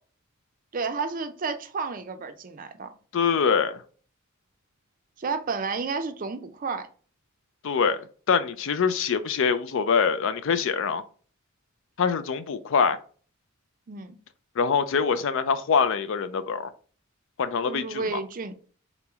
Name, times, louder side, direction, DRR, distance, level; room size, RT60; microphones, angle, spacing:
voice 1, 0.7-2.9 5.2-6.9 13.9-14.2 17.7-18.5, right 4 dB, 40° right, 0.4 m, -31 dB
voice 2, 3.1-3.8 7.6-11.0 12.0-13.0 14.6-16.7 17.4-18.2, left 6 dB, 60° left, 0.4 m, -24 dB
4.0 x 3.0 x 3.4 m
head